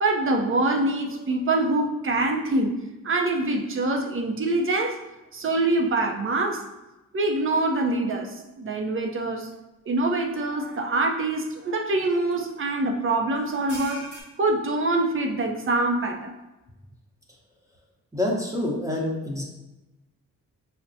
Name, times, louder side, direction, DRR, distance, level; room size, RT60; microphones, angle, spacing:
voice 1, 0.0-5.0 5.3-6.7 7.1-9.5 9.9-14.1 14.4-16.3, right 2 dB, 40° right, 3 dB, 0.5 m, -25 dB
sound 1, 9.5-9.6 10.1-10.2 12.1-12.3 13.3-14.2, right 1 dB, 80° right, 1.0 m, -41 dB
voice 2, 18.1-19.4, left 1 dB, 10° right, -2 dB, 0.9 m, -27 dB
5.4 x 2.1 x 2.7 m, 1.0 s
cardioid pair, 90°, 32 cm